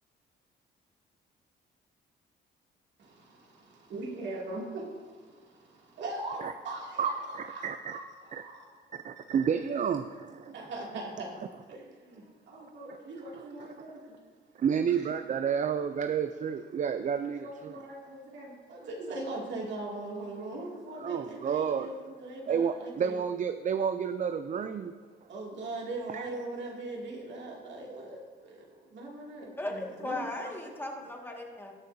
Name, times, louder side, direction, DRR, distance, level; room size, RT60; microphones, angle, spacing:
voice 1, 3.0-8.7 9.3-9.4 10.5-11.4 11.7-14.2 14.9-15.1 17.4-23.2 25.2-30.3, right 2 dB, 65° right, -2 dB, 2.4 m, -41 dB
voice 2, 7.0-8.0 8.3-8.4 8.9-10.5 13.4-13.5 14.6-17.8 21.0-21.9 22.5-24.9 26.1-26.3, right 7 dB, 40° right, 10 dB, 0.4 m, -30 dB
voice 3, 29.6-31.7, left 2 dB, 10° left, 0 dB, 1.8 m, -37 dB
19.5 x 6.6 x 2.7 m, 1.5 s
cardioid pair, 90°, 20 cm